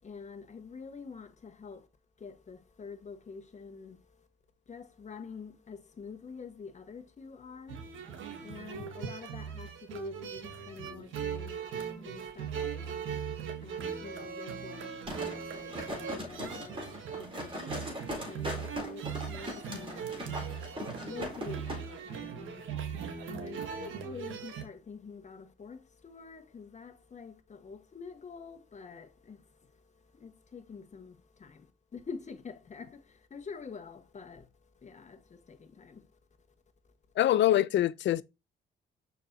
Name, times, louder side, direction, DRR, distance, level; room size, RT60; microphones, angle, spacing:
voice 1, 0.0-1.9 2.2-4.3 4.7-22.9 23.2-36.2, left 5 dB, 35° left, 1.4 m, -47 dB
sound 1, 7.7-24.6, right 7 dB, 80° right, 1.4 m, -39 dB
sound 2, 15.1-21.8 22.2-22.3, equal, 25° right, 4.1 m, -40 dB
voice 2, 37.2-38.2, left 12 dB, 65° left, 0.5 m, -25 dB
6.6 x 5.2 x 2.8 m
cardioid pair, 90°, 20 cm